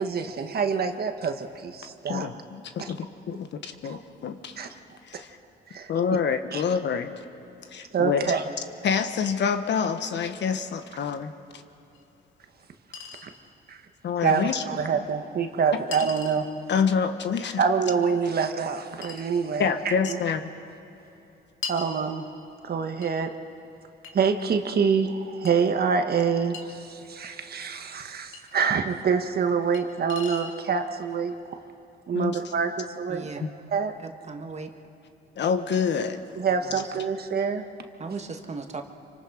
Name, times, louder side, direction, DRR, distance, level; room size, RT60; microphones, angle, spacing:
voice 1, 0.0-2.3 2.8-2.9 3.9-4.0 4.6-4.7 5.7-5.9 6.5-6.6 7.9-8.4 13.2-13.3 13.7-13.8 14.2-16.5 17.6-19.7 20.1-20.2 21.7-22.3 22.6-23.3 24.1-31.6 32.1-33.3 33.7-33.9 36.4-37.6, right 6 dB, 50° right, 6 dB, 1.5 m, -26 dB
voice 2, 2.1-4.6 5.0-5.4 5.9-7.1 7.7-8.3 8.8-11.6 14.0-14.6 16.7-17.6 19.6-20.4 32.1-32.4 33.4-33.5 35.4-36.2, left 6 dB, 60° left, 8 dB, 1.3 m, -27 dB
Chink clink, 11.9-12.0 12.9-13.3 14.5-14.6 15.9-16.4 17.9-18.0 19.0-19.3 20.1-20.2 21.6-21.9 23.0-23.1 24.0-24.8 25.5-25.6 26.5-26.7 28.3-28.4 29.7-29.8 30.1-30.6, left 6 dB, 80° left, 2.7 m, -38 dB
voice 3, 33.1-33.4 34.0-34.7 36.5-36.6 38.0-38.8, right 4 dB, 35° right, 5 dB, 1.8 m, -37 dB
27.0 x 25.0 x 5.0 m, 2.9 s
cardioid pair, 90°, 20 cm